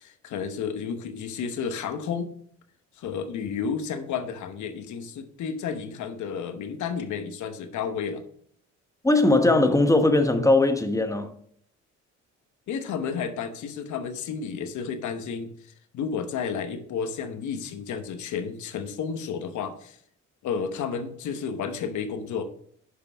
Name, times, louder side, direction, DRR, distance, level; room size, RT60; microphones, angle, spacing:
voice 1, 0.0-2.3 3.0-8.2 12.7-20.0 20.4-22.4, left 6 dB, 75° left, 1.0 m, -32 dB
voice 2, 9.0-11.3, left 2 dB, 10° left, 1.0 m, -20 dB
6.5 x 5.4 x 6.1 m
cardioid pair, 90°, 30 cm